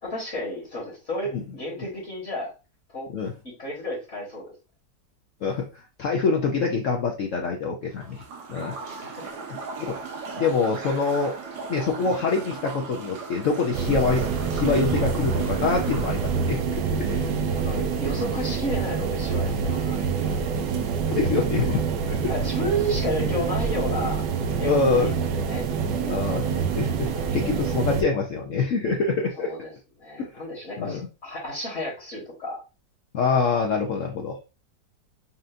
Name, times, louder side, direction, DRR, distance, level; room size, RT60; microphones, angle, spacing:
voice 1, 0.0-2.5 2.9-3.1 3.6-4.5 8.8-9.1 17.6-20.4 22.3-24.2 24.6-25.6 29.4-29.7 30.0-32.6, equal, 45° left, -4 dB, 1.6 m, -32 dB
voice 2, 5.4-8.2 8.5-9.1 9.9-10.0 10.4-11.3 11.7-14.2 14.5-17.3 21.1-21.8 22.1-22.3 24.6-25.1 26.1-29.5 30.2-30.4 30.8-31.0 33.1-34.4, left 4 dB, 70° left, 1 dB, 0.7 m, -25 dB
sound 1, 8.0-16.6, right 4 dB, 75° right, 1.4 m, -38 dB
sound 2, 13.7-28.0, right 6 dB, 90° right, 1.3 m, -26 dB
5.5 x 2.5 x 2.5 m, 0.30 s
omnidirectional pair, 1.9 m